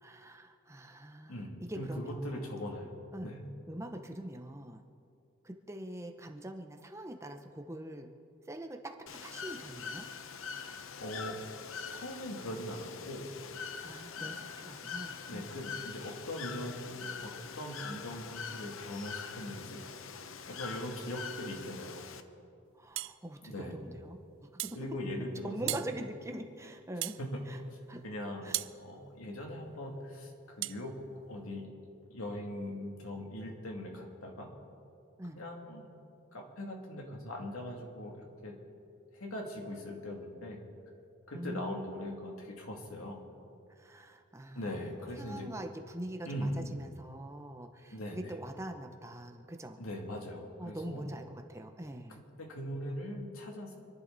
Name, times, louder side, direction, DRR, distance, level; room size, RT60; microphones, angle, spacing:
voice 1, 0.0-2.5 3.1-3.3 3.7-4.8 5.4-8.1 8.5-10.1 13.8-15.5 22.7-24.8 25.4-27.2 27.5-27.6 27.9-28.0 28.4-28.6 35.2-35.4 41.3-41.9 42.3-42.4 43.8-49.8 50.6-52.2, right 1 dB, 15° right, 4 dB, 0.8 m, -44 dB
voice 2, 1.3-3.4 11.0-11.4 11.9-13.3 14.2-14.4 15.3-19.8 20.5-22.0 23.4-23.8 24.7-25.8 27.2-27.3 27.7-28.5 28.8-30.9 31.3-31.6 32.1-34.5 35.3-35.8 36.3-38.5 39.1-40.6 41.3-43.2 44.6-45.5 46.3-46.7 47.9-48.3 49.8-51.1 52.4-53.7, left 1 dB, 90° left, 0 dB, 2.6 m, -40 dB
Bird / Water, 9.1-22.2, left 6 dB, 75° left, 0.8 m, -44 dB
sound 1, 23.0-23.2 24.6-24.8 25.7-25.9 27.0-27.2 28.5-28.8 30.6-30.8, right 17 dB, 65° right, 0.4 m, -35 dB
27.5 x 11.0 x 4.1 m, 2.6 s
head